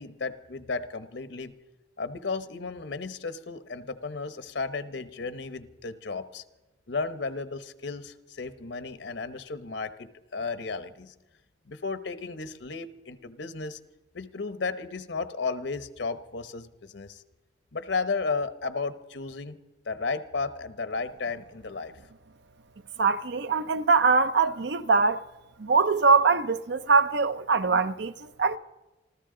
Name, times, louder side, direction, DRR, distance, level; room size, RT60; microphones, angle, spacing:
voice 1, 0.0-1.5 2.0-6.4 6.9-11.1 11.7-13.8 14.1-17.2 17.7-19.6 19.8-21.9, left 4 dB, 75° left, 0.9 m, -34 dB
voice 2, 23.0-25.2 25.6-28.6, right 4 dB, 65° right, 0.6 m, -23 dB
26.0 x 14.0 x 3.8 m
head